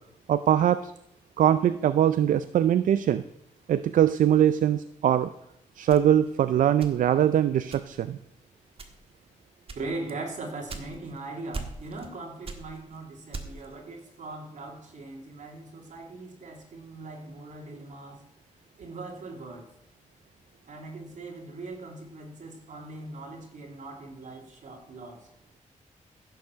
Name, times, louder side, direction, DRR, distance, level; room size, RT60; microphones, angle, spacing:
voice 1, 0.3-0.9 1.4-3.2 3.7-5.3 5.8-8.2, right 10 dB, 90° right, 13 dB, 0.4 m, -22 dB
sound 1, 5.9-7.3 7.7-8.2 8.7-9.2 9.7-11.2 11.5-12.1 12.4-13.8, right 4 dB, 45° right, 1.6 m, -40 dB
voice 2, 9.7-18.2 18.8-19.7 20.7-25.3, right 2 dB, 70° right, 1 dB, 2.9 m, -40 dB
15.5 x 7.0 x 6.2 m, 0.78 s
wide cardioid pair, 105°, 13 cm